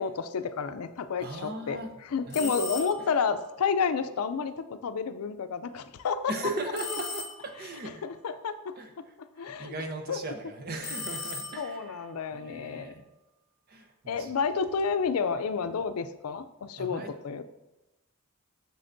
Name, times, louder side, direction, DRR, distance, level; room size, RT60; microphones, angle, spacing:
voice 1, 0.0-1.8 2.0-6.2 8.0-8.7 9.2-9.7 10.1-10.2 11.6-12.9 14.1-17.4, left 5 dB, 85° left, 11 dB, 0.4 m, -30 dB
voice 2, 1.2-1.9 2.3-3.1 6.3-8.0 8.8-12.0 12.3-13.0 13.7-14.3 16.8-17.1, right 2 dB, 45° right, 6 dB, 0.7 m, -38 dB
sound 1, 2.3-3.2 6.8-7.7 10.8-12.0, left 4 dB, 50° left, 0.9 m, -37 dB
7.7 x 6.8 x 2.6 m, 1.0 s
head